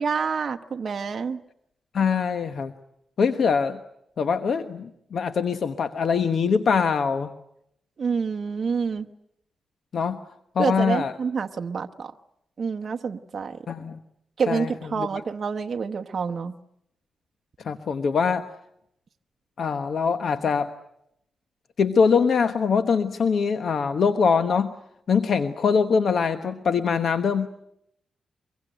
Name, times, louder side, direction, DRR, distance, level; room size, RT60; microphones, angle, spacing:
voice 1, 0.0-1.4 8.0-9.0 10.6-12.1 12.6-13.6 14.4-16.5, right 5 dB, 50° right, 5 dB, 1.0 m, -27 dB
voice 2, 1.9-2.7 3.2-3.8 4.2-7.3 9.9-10.2 10.5-11.1 13.7-14.0 14.5-15.1 17.6-18.4 19.6-20.7 21.8-24.7 25.1-27.5, left 5 dB, 65° left, 9 dB, 1.1 m, -23 dB
23.5 x 23.0 x 9.1 m, 0.78 s
wide cardioid pair, 120°, 0 cm